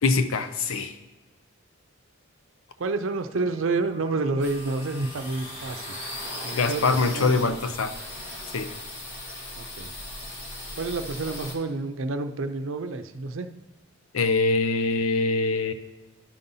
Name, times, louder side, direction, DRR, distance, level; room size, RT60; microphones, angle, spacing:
voice 1, 0.0-1.0 6.5-7.9 8.5-8.7 14.1-15.7, left 3 dB, 85° left, 10 dB, 0.6 m, -23 dB
voice 2, 2.8-6.0 6.4-7.4 9.6-9.9 10.8-13.5, right 3 dB, 70° right, 8 dB, 0.6 m, -29 dB
Wind instrument woodwind instrument, 3.3-7.8, right 3 dB, 20° right, 0.4 m, -48 dB
sound 1, 4.4-11.5, left 1 dB, 60° left, 1.7 m, -38 dB
10.5 x 4.0 x 5.5 m, 1.1 s
head